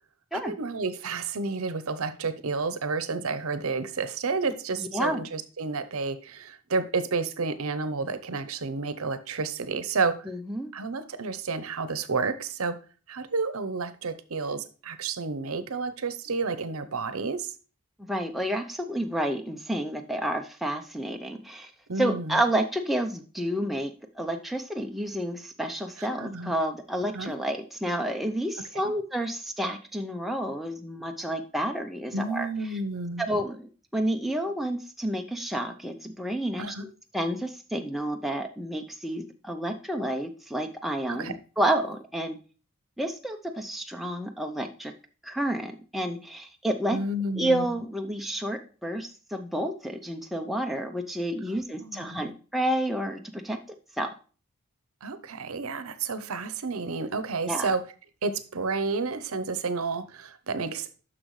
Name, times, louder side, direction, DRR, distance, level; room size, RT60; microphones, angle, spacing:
voice 1, 0.3-10.3 10.7-12.8 13.1-17.5 21.9-22.4 26.2-26.5 27.1-27.3 32.1-33.2 36.6-36.8 41.1-41.3 46.9-47.6 51.8-52.3 55.0-57.8 58.2-60.9, right 4 dB, 75° right, 0.8 m, -30 dB
voice 2, 4.8-5.2 10.3-10.7 18.0-21.7 22.0-32.8 33.2-36.7 37.1-42.4 43.0-44.9 45.2-47.0 47.3-53.6 54.0-54.1 57.5-57.7, right 1 dB, ahead, 0.5 m, -30 dB
10.0 x 6.2 x 3.1 m
head